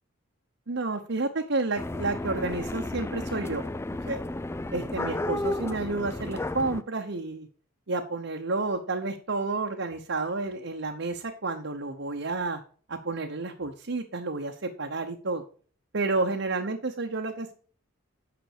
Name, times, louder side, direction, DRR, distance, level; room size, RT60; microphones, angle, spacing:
voice 1, 0.7-3.6 4.1-4.2 4.7-7.5 7.9-12.6 12.9-15.4 15.9-17.5, right 3 dB, 60° right, 2 dB, 1.0 m, -30 dB
sound 1, 1.8-6.8, left 2 dB, 10° left, 0.3 m, -33 dB
9.3 x 6.0 x 5.0 m, 0.43 s
head